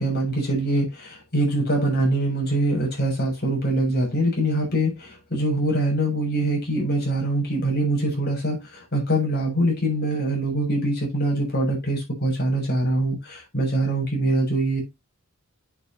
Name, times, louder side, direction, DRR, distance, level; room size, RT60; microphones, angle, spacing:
voice 1, 0.0-14.8, right 1 dB, 45° left, 7.3 m, -23 dB
11.0 x 7.7 x 3.0 m
head